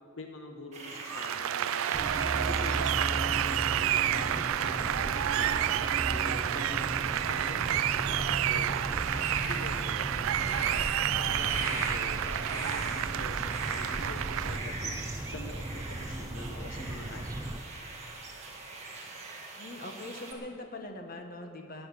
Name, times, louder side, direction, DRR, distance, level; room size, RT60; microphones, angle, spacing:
voice 1, 0.2-1.8 2.5-5.7 6.1-8.7 9.1-10.8 11.1-15.0 15.3-17.6, left 2 dB, 70° left, 5 dB, 1.0 m, -45 dB
sound 1, 0.7-20.3, right 3 dB, 30° right, 1.9 m, -42 dB
Applause, 1.0-14.6, right 11 dB, 80° right, 0.3 m, -30 dB
sound 2, 1.9-17.6, right 1 dB, 15° right, 0.4 m, -36 dB
voice 2, 19.6-21.9, left 2 dB, 45° left, 4 dB, 1.2 m, -42 dB
17.5 x 6.8 x 9.7 m, 2.6 s
head